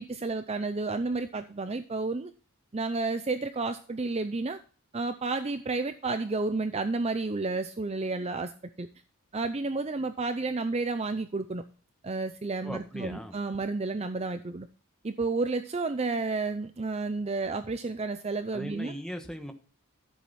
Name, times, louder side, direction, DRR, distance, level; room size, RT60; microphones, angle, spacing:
voice 1, 0.0-2.3 2.7-4.6 4.9-8.5 8.8-8.9 9.3-11.6 12.0-14.7 15.0-18.9, right 3 dB, 30° right, 10 dB, 0.5 m, -31 dB
voice 2, 12.6-13.4 18.5-19.5, equal, 5° left, 5 dB, 1.4 m, -38 dB
13.5 x 7.6 x 4.2 m, 0.37 s
head